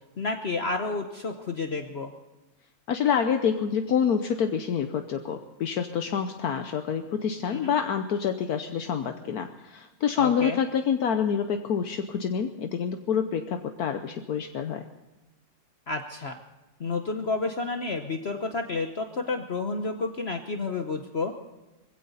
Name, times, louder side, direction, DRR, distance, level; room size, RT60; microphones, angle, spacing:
voice 1, 0.2-2.1 7.5-7.8 10.2-10.6 15.9-16.4 16.8-21.3, left 3 dB, 45° left, 5 dB, 1.1 m, -30 dB
voice 2, 2.9-14.9, left 7 dB, 70° left, 6 dB, 1.3 m, -27 dB
22.0 x 16.0 x 4.1 m, 1.1 s
omnidirectional pair, 1.7 m